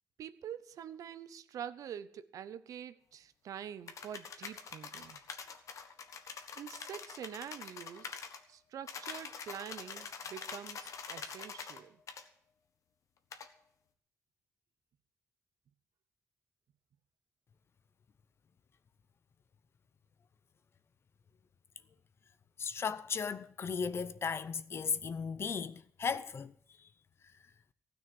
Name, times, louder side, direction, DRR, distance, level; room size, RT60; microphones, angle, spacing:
voice 1, 0.2-5.2 6.6-8.1 8.5-12.0, right 9 dB, 85° right, 0.8 m, -46 dB
sound 1, 3.9-8.4 8.9-11.8 12.1-12.2 13.3-13.5, left 6 dB, 65° left, 1.4 m, -45 dB
voice 2, 22.6-26.5 26.8-26.9, left 6 dB, 45° left, 0.7 m, -36 dB
15.5 x 6.5 x 9.5 m
cardioid pair, 120°, 6 cm